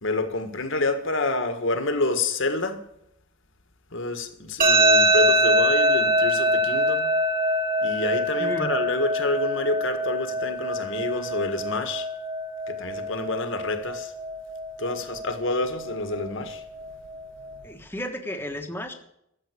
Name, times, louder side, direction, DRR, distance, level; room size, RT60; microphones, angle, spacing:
voice 1, 0.0-2.8 3.9-7.1 7.8-12.1 12.7-14.1 14.8-16.6, left 2 dB, 60° left, 1.7 m, -28 dB
sound 1, 4.6-17.6, equal, 40° right, 2.4 m, -24 dB
voice 2, 17.6-18.9, equal, 10° left, 1.4 m, -33 dB
13.5 x 7.6 x 8.3 m
head